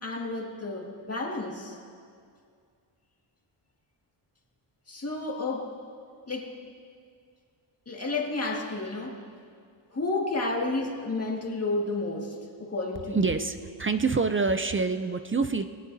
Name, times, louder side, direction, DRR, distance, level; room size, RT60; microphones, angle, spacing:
voice 1, 0.0-1.8 4.9-5.7 6.3-6.5 7.9-9.2 9.9-13.3, left 2 dB, 30° left, -1 dB, 2.0 m, -31 dB
voice 2, 13.1-15.6, right 4 dB, 25° right, 9 dB, 0.4 m, -26 dB
21.5 x 18.0 x 2.7 m, 2.2 s
wide cardioid pair, 120°, 49 cm